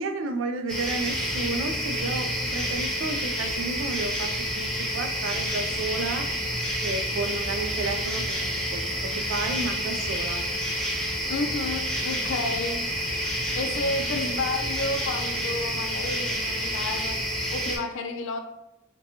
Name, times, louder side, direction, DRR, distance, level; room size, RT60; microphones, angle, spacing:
voice 1, 0.0-6.3 6.8-10.4, right 3 dB, 90° right, 7 dB, 0.3 m, -32 dB
sound 1, 0.7-17.8, equal, 5° left, 0.5 m, -29 dB
voice 2, 11.3-12.8 13.5-18.4, left 2 dB, 75° left, 5 dB, 0.4 m, -31 dB
2.7 x 2.2 x 2.7 m, 0.90 s
head